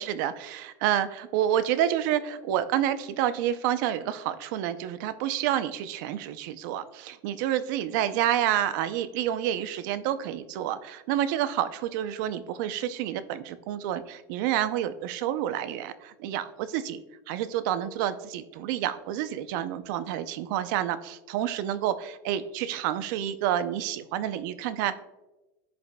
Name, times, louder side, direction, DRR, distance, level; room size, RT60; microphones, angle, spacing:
voice 1, 0.0-24.9, right 11 dB, 65° right, 13 dB, 0.6 m, -29 dB
14.5 x 5.2 x 2.2 m, 1.1 s
supercardioid pair, 150°, 11 cm